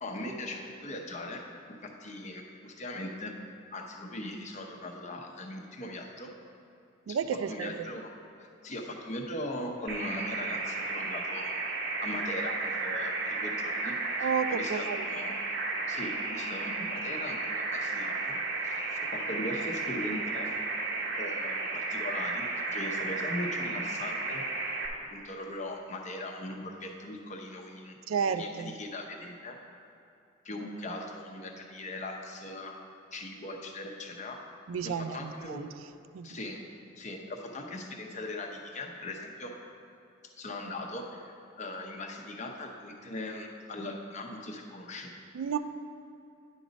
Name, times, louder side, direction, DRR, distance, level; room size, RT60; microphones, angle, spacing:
voice 1, 0.0-1.4 1.8-3.3 3.7-6.3 7.5-8.1 8.4-11.6 12.0-15.4 15.9-18.4 18.6-20.5 21.1-24.4 25.1-29.6 30.4-32.7 33.1-34.4 34.8-35.6 36.2-36.6 37.0-39.5 40.4-45.1, left 1 dB, 35° left, 1 dB, 0.7 m, -39 dB
voice 2, 7.1-7.7 14.2-15.0 28.1-28.7 34.7-35.7 36.1-36.3 45.3-45.6, right 6 dB, 75° right, 11 dB, 0.3 m, -31 dB
sound 1, 9.9-24.9, right 3 dB, 50° right, 0.7 m, -33 dB
9.8 x 5.1 x 4.0 m, 2.7 s
head